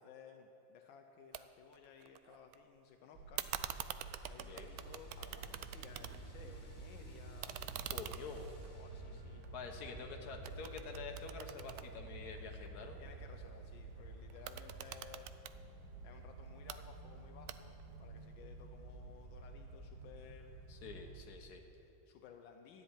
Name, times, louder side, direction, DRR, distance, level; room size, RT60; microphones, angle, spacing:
voice 1, 0.0-3.5 4.3-7.6 8.7-9.5 13.0-15.3 16.0-20.6 21.7-22.8, left 6 dB, 80° left, 4 dB, 1.5 m, -58 dB
sound 1, 1.3-1.4 1.7-2.6 3.4-6.4 6.8-10.0 10.4-12.7 14.3-15.6 16.4-16.8 17.5-17.9, right 11 dB, 80° right, 0.8 m, -46 dB
sound 2, 3.1-21.3, right 3 dB, 55° right, 1.8 m, -51 dB
sound 3, 3.5-10.4, left 1 dB, 25° left, 3.7 m, -64 dB
voice 2, 4.4-4.7 7.9-8.5 9.5-13.0 20.7-21.6, left 5 dB, 55° left, 3 dB, 1.7 m, -48 dB
13.0 x 7.7 x 9.8 m, 2.9 s
omnidirectional pair, 2.1 m